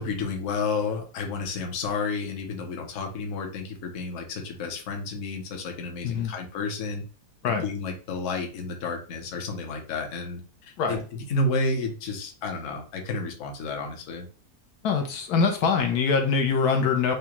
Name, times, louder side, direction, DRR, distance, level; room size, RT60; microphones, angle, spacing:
voice 1, 0.0-7.0 7.5-14.3, left 3 dB, 60° left, 2 dB, 1.1 m, -31 dB
voice 2, 14.8-17.1, left 5 dB, 80° left, 4 dB, 1.1 m, -23 dB
4.9 x 2.2 x 2.9 m, 0.37 s
omnidirectional pair, 1.7 m